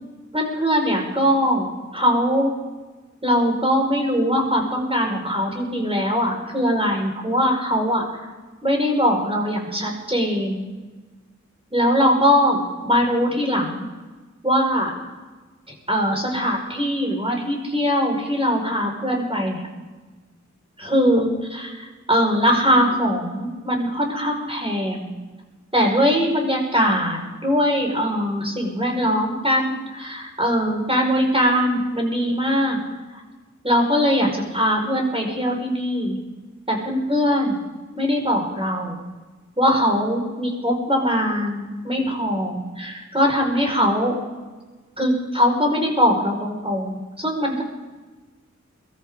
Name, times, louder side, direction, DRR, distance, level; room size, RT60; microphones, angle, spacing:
voice 1, 0.3-2.5 3.2-8.2 8.6-10.6 11.7-13.9 14.4-14.9 15.9-19.7 20.8-21.7 22.1-25.1 25.7-32.8 33.1-33.2 33.6-34.3 34.5-36.2 36.7-37.6 37.9-39.0 39.6-44.1 45.0-47.6, equal, 20° right, 1 dB, 5.1 m, -21 dB
23.5 x 13.5 x 3.8 m, 1.3 s
wide cardioid pair, 55°, 29 cm